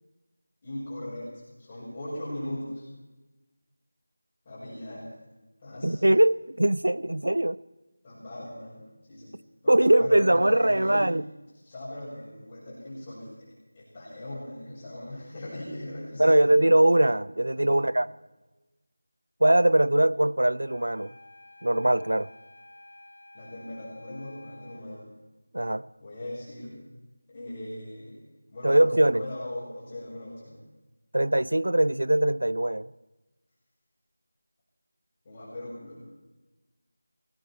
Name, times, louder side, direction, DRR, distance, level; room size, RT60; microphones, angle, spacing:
voice 1, 0.6-2.9 4.4-5.1 5.6-6.0 8.0-8.8 9.1-9.3 9.6-11.1 11.6-13.3 13.7-16.5 17.5-17.9 23.3-25.1 26.0-26.8 27.3-28.2 28.5-30.6 35.2-36.0, left 1 dB, 20° left, -12 dB, 5.7 m, -39 dB
voice 2, 5.8-7.6 9.7-11.2 16.2-18.1 19.4-21.1 21.6-22.3 25.5-25.9 28.6-29.2 31.1-32.9, right 1 dB, 90° right, 20 dB, 0.5 m, -21 dB
sound 1, 20.6-24.9, left 1 dB, 70° left, 4.4 m, -51 dB
19.5 x 16.5 x 4.4 m, 1.2 s
figure-of-eight pair, 170°, 0 cm